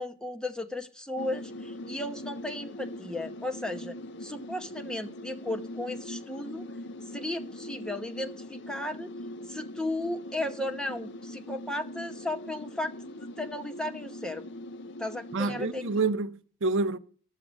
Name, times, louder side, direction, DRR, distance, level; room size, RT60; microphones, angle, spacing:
voice 1, 0.0-3.9 4.2-6.6 7.1-9.1 9.5-14.5 15.0-15.8, left 1 dB, 5° left, 0.9 m, -35 dB
sound 1, 1.2-16.1, left 1 dB, 55° left, 0.6 m, -42 dB
voice 2, 15.3-17.0, right 3 dB, 60° right, 0.6 m, -28 dB
12.0 x 6.6 x 7.2 m
head